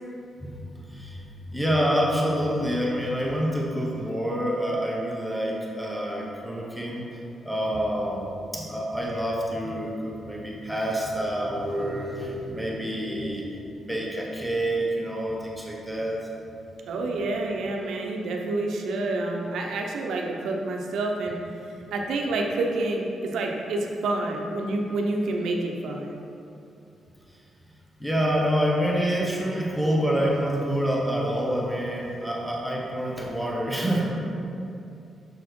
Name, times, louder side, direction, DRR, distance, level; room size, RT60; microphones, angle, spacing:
voice 1, 0.4-1.2 1.5-7.0 7.4-16.2 28.0-34.2, equal, ahead, -3 dB, 0.8 m, -27 dB
voice 2, 16.9-21.4 21.9-26.2, right 2 dB, 80° right, 1 dB, 0.8 m, -28 dB
6.6 x 4.2 x 4.6 m, 2.7 s
wide cardioid pair, 160°, 0 cm